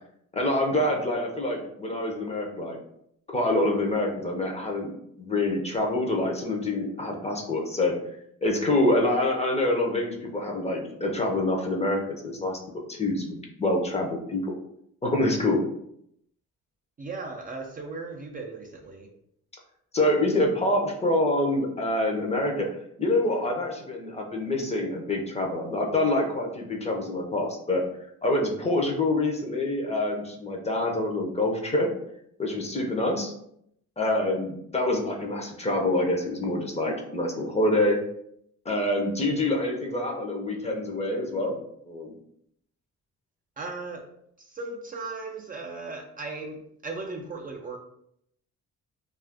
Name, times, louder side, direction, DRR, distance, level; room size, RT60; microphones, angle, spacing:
voice 1, 0.3-2.8 3.3-7.9 8.4-14.6 15.0-15.6 19.9-22.7 23.0-27.8 28.2-31.9 32.4-33.3 34.0-38.0 38.6-41.6 41.8-42.1, left 1 dB, 20° left, 1 dB, 0.6 m, -26 dB
voice 2, 17.0-19.1 43.6-44.1 44.4-47.8, right 3 dB, 30° right, -1 dB, 0.4 m, -37 dB
2.4 x 2.3 x 3.5 m, 0.73 s
cardioid pair, 90°, 30 cm